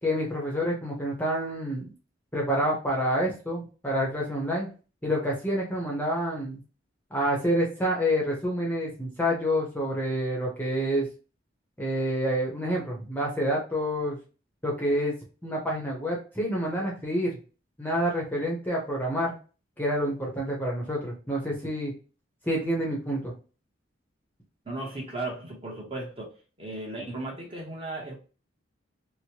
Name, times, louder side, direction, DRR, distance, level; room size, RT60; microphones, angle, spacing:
voice 1, 0.0-1.9 2.3-4.7 5.0-6.6 7.1-11.1 11.8-14.2 14.6-15.2 15.4-17.3 17.8-19.3 19.8-21.9 22.4-23.3, equal, 10° left, 0.7 m, -28 dB
voice 2, 24.6-26.3 26.6-28.2, right 2 dB, 30° right, 0.9 m, -35 dB
3.0 x 2.1 x 2.8 m
head